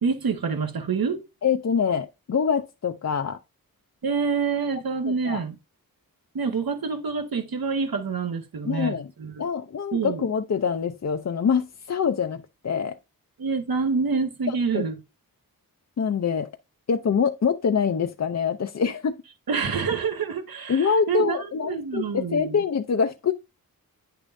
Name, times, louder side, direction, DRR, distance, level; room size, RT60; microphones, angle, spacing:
voice 1, 0.0-1.2 4.0-5.6 6.3-9.4 9.9-10.2 13.4-14.9 19.5-22.6, right 5 dB, 75° right, 1.6 m, -27 dB
voice 2, 1.4-3.4 5.2-5.4 8.6-9.1 9.4-13.0 14.5-14.9 16.0-16.5 16.9-19.2 20.7-23.3, left 6 dB, 45° left, 0.6 m, -25 dB
9.4 x 6.6 x 2.6 m
wide cardioid pair, 145°, 36 cm